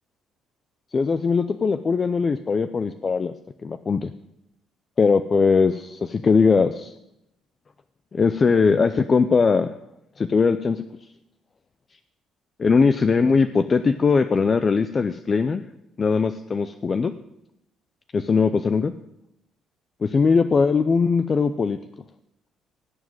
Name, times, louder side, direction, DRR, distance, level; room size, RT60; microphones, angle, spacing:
voice 1, 0.9-3.3 3.6-4.1 5.0-6.9 8.1-9.7 10.2-10.8 12.6-15.6 16.0-17.1 18.1-18.9 20.1-21.8, left 5 dB, 25° left, 11 dB, 0.5 m, -20 dB
17.5 x 7.3 x 9.1 m, 0.83 s
cardioid pair, 170°, 0 cm